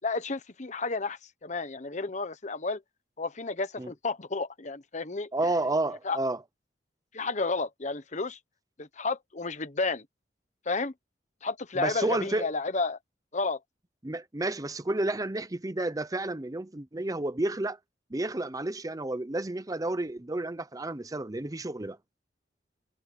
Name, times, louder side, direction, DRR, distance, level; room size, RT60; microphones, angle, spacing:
voice 1, 0.0-2.8 3.2-5.3 6.0-6.2 7.1-8.4 8.8-10.0 10.7-10.9 11.4-13.0 13.3-13.6, left 3 dB, 45° left, 1.2 m, -31 dB
voice 2, 5.3-6.4 11.8-12.5 14.0-17.8 18.1-22.0, right 2 dB, 20° right, 0.7 m, -31 dB
head